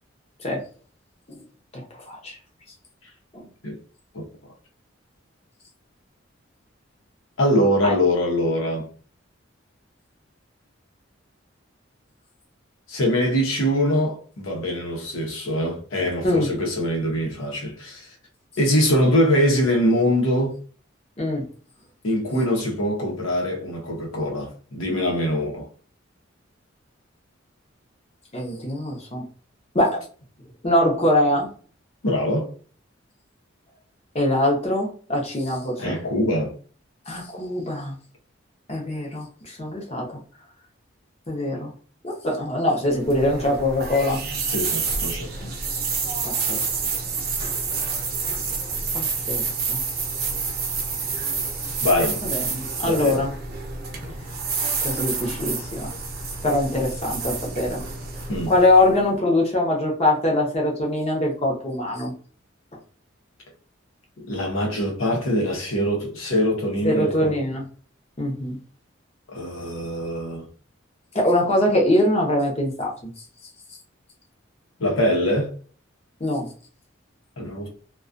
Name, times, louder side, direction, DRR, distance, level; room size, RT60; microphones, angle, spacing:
voice 1, 1.7-2.4 3.3-3.5 7.8-8.0 16.2-16.5 21.2-21.5 28.3-29.3 29.7-30.0 30.6-31.5 34.1-36.0 37.1-38.0 38.7-40.1 41.3-41.7 42.0-44.2 45.4-45.5 46.2-46.7 48.9-49.8 52.2-53.3 54.8-55.9 56.4-57.8 58.5-62.1 66.8-67.6 68.2-68.6 71.1-73.1 76.2-76.5, left 1 dB, 30° left, 0.7 m, -23 dB
voice 2, 7.4-8.9 12.9-18.1 18.6-20.5 22.0-25.7 32.0-32.5 35.8-36.5 44.5-45.3 51.8-52.2 52.9-53.2 58.3-58.5 64.2-67.3 69.3-70.4 74.8-75.5 77.4-77.7, equal, 85° left, 0.8 m, -23 dB
sound 1, 42.9-59.1, right 4 dB, 50° right, 0.6 m, -28 dB
2.3 x 2.2 x 2.5 m
head